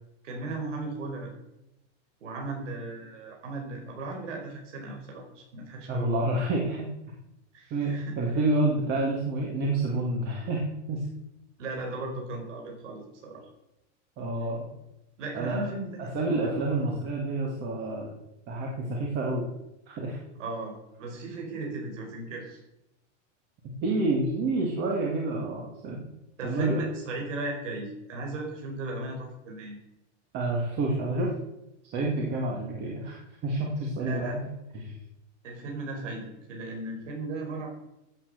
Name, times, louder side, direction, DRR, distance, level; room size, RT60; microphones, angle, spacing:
voice 1, 0.2-1.3 2.2-6.2 7.5-8.2 11.6-13.4 15.2-16.9 20.3-22.6 26.4-29.8 34.0-34.4 35.4-36.2 36.5-37.7, right 2 dB, 80° right, 1 dB, 4.9 m, -36 dB
voice 2, 5.9-6.9 7.7-11.1 14.2-14.7 15.3-15.7 16.1-18.1 18.5-19.4 19.9-20.2 23.8-26.1 26.4-26.9 30.3-31.3 31.8-34.5 34.7-35.0, right 2 dB, 30° right, -1 dB, 2.2 m, -28 dB
14.5 x 8.6 x 6.7 m, 0.89 s
supercardioid pair, 175°, 36 cm